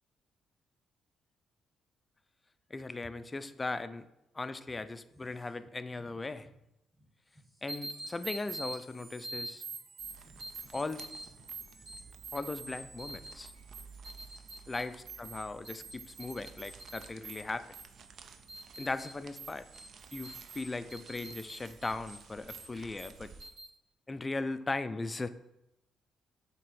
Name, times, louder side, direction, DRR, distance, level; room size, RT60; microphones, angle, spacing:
voice 1, 2.7-4.1 4.3-6.5 7.6-9.6 10.7-11.0 12.3-13.5 14.7-17.6 18.8-19.6 20.1-23.3 24.1-25.3, left 3 dB, 20° left, 12 dB, 0.4 m, -38 dB
sound 1, 4.7-6.6 6.9-12.0, right 1 dB, 10° right, 1.3 m, -63 dB
sound 2, 7.7-23.7, right 2 dB, 75° right, 1.5 m, -47 dB
sound 3, 10.0-23.5, right 5 dB, 60° right, 0.5 m, -55 dB
7.3 x 2.9 x 4.6 m, 0.86 s
cardioid pair, 90°, 0 cm